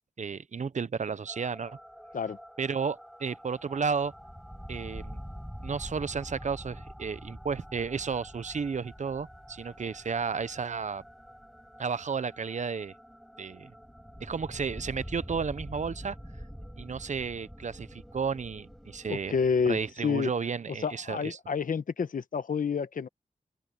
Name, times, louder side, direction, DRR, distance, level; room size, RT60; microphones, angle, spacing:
voice 1, 0.2-1.8 2.6-4.1 4.7-5.2 5.6-11.0 11.8-12.9 13.4-13.7 14.2-16.2 16.8-19.4 19.7-21.4, right 5 dB, 65° right, 0.8 m, -33 dB
sound 1, 1.3-19.9, equal, ahead, 6.1 m, -46 dB
voice 2, 19.1-20.3 20.8-23.1, left 6 dB, 85° left, 1.1 m, -29 dB
open air
wide cardioid pair, 90°, 13 cm